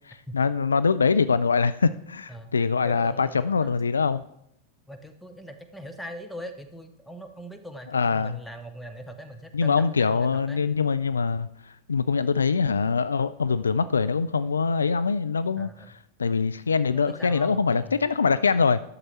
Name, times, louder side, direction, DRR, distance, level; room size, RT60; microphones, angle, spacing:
voice 1, 0.1-4.2 7.9-8.4 9.5-11.5 11.9-15.7 16.2-18.8, left 5 dB, 75° left, 0.3 m, -23 dB
voice 2, 2.8-3.8 4.9-10.7 15.6-15.9 16.9-18.0, equal, 5° left, 0.9 m, -41 dB
11.0 x 6.6 x 4.2 m
figure-of-eight pair, 90°, 0 cm